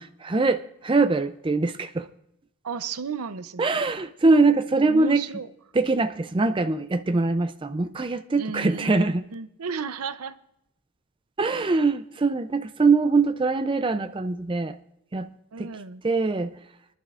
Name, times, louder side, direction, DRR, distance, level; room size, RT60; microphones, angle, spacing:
voice 1, 0.0-2.1 3.6-5.2 5.7-9.2 11.4-14.8 15.1-15.3 15.6-15.7 16.0-16.5, right 3 dB, 20° right, 0.4 m, -23 dB
voice 2, 2.6-3.8 4.9-5.5 8.3-10.4 11.5-11.7 15.5-16.0, right 5 dB, 90° right, 0.6 m, -34 dB
23.0 x 11.5 x 2.5 m
head